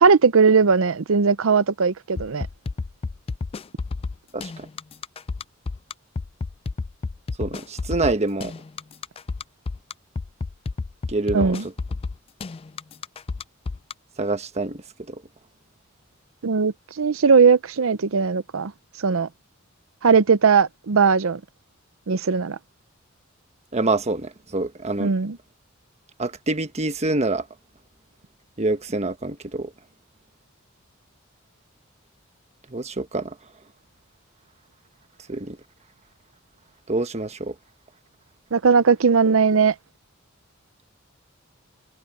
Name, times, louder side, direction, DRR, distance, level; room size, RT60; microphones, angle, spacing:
voice 1, 0.0-2.5 11.3-11.7 16.4-18.7 19.0-19.3 20.0-21.4 22.1-22.6 25.0-25.4 38.5-39.7, right 5 dB, 80° right, 0.6 m, -18 dB
sound 1, 2.2-13.9, left 4 dB, 30° left, 0.3 m, -30 dB
voice 2, 4.3-4.7 7.4-8.5 11.1-11.6 14.2-14.8 15.1-15.2 23.7-25.1 26.2-27.4 28.6-29.7 32.7-33.3 35.3-35.6 36.9-37.5, right 2 dB, 35° right, 1.2 m, -26 dB
head